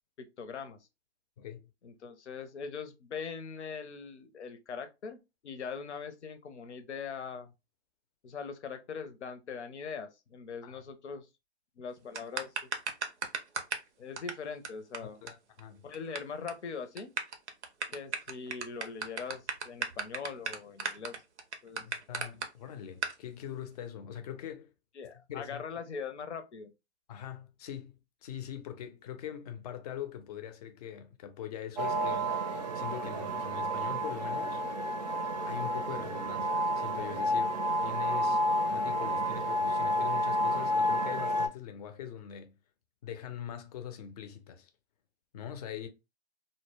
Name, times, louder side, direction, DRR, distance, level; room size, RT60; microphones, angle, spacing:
voice 1, 0.2-0.8 1.8-7.5 8.2-11.3 11.8-12.6 14.0-15.2 15.8-17.1 17.9-21.2 21.6-21.9 25.0-26.7, left 5 dB, 85° left, 0.6 m, -41 dB
voice 2, 1.4-1.7 10.6-10.8 15.2-15.8 21.8-24.7 25.3-25.6 27.1-32.4 32.7-34.6 35.4-42.6 43.0-44.7 45.3-45.9, left 9 dB, 35° left, 0.5 m, -42 dB
sound 1, 12.1-13.9 14.2-14.3 14.6-14.7 14.9-15.0 15.3-15.4 15.6-16.2 16.5-16.6 17.0-22.5 23.0-23.1, right 5 dB, 85° right, 0.6 m, -35 dB
sound 2, 31.8-41.5, equal, 40° right, 0.5 m, -30 dB
2.1 x 2.0 x 3.2 m
hypercardioid pair, 130°, 33 cm